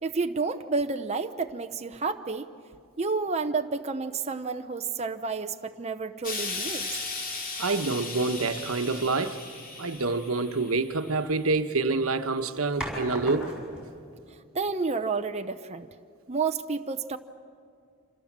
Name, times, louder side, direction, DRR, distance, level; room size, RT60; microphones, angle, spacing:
voice 1, 0.0-2.5 3.0-6.9 14.5-15.9 16.3-17.2, right 4 dB, 30° right, 0.7 m, -30 dB
Explosion, 6.2-11.5 12.4-12.5, left 3 dB, 40° left, 3.1 m, -37 dB
voice 2, 7.6-9.4 9.8-13.6, right 3 dB, 80° right, 1.2 m, -27 dB
sound 1, 11.3-11.6 12.8-13.9, right 1 dB, 5° right, 6.4 m, -37 dB
28.0 x 26.5 x 7.4 m
head